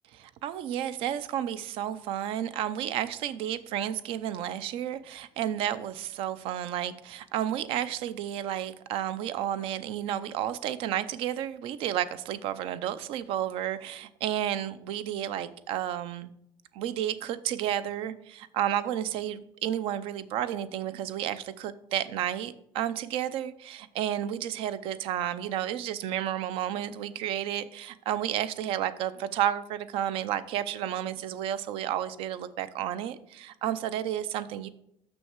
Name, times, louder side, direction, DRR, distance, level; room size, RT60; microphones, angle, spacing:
voice 1, 0.2-16.3 16.7-34.7, right 11 dB, 75° right, 14 dB, 0.5 m, -31 dB
6.5 x 6.2 x 4.5 m, 0.75 s
cardioid pair, 150°, 9 cm